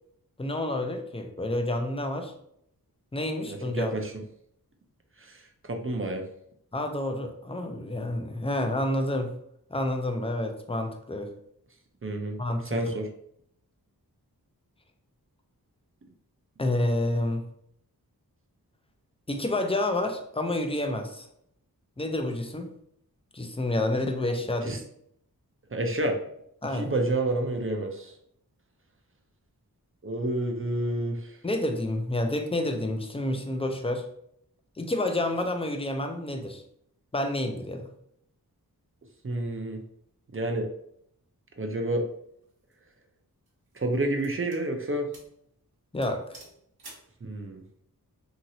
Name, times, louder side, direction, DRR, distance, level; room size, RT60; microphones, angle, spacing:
voice 1, 0.4-2.3 3.1-3.9 6.7-9.3 9.7-11.3 12.4-12.8 16.6-17.4 19.3-21.3 22.0-22.7 23.3-24.8 26.6-26.9 31.4-34.0 34.8-36.6 37.1-37.9 45.9-46.4, left 1 dB, 15° left, 5 dB, 0.4 m, -29 dB
voice 2, 3.5-4.1 5.2-6.2 12.0-12.4 12.6-13.1 24.6-24.8 25.7-26.2 26.7-28.1 30.0-31.4 39.2-39.8 40.3-40.7 41.6-42.0 43.7-45.1 47.2-47.6, right 1 dB, 35° right, 3 dB, 0.5 m, -29 dB
sound 1, 42.4-42.7 43.5-44.7 45.1-45.4 45.7-45.8 46.0-47.1, right 2 dB, 80° right, 0.9 m, -50 dB
2.9 x 2.8 x 2.6 m, 0.71 s
wide cardioid pair, 50°, 37 cm